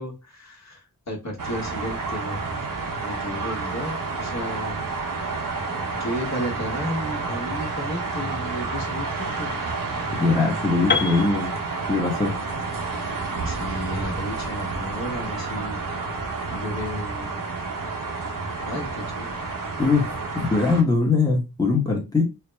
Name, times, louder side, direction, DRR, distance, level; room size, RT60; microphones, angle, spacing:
voice 1, 0.0-2.4 3.0-4.9 5.6-9.7 13.4-15.8 16.5-17.4 18.7-19.3, equal, 50° left, 1.2 m, -33 dB
sound 1, 1.4-20.8, right 3 dB, 65° right, 1.0 m, -30 dB
voice 2, 10.2-11.5 11.9-12.4 19.8-22.2, left 3 dB, 10° left, 1.0 m, -21 dB
Piano, 10.9-14.8, left 5 dB, 35° left, 0.4 m, -31 dB
4.6 x 2.1 x 3.3 m
wide cardioid pair, 105°, 34 cm